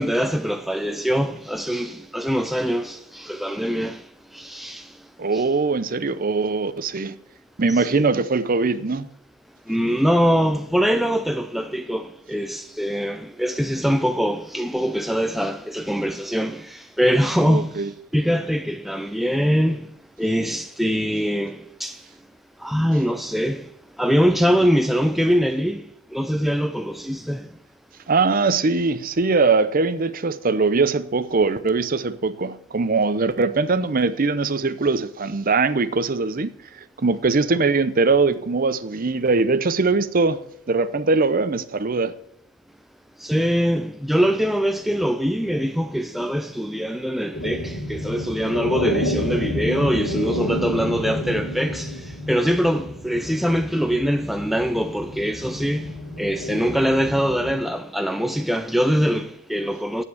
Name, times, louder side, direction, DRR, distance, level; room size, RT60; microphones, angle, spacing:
voice 1, 0.0-4.0 4.3-4.9 5.3-5.4 7.7-7.8 9.7-17.8 18.1-19.9 20.2-22.0 22.6-23.7 24.0-27.5 43.2-55.9 56.2-60.0, equal, ahead, 0.4 m, -23 dB
voice 2, 5.2-7.1 7.6-9.1 17.4-17.9 28.1-36.5 37.0-40.4 40.7-42.1, right 4 dB, 40° right, 0.6 m, -21 dB
sound 1, 47.3-57.6, equal, 85° left, 3.2 m, -29 dB
9.6 x 8.2 x 7.0 m
head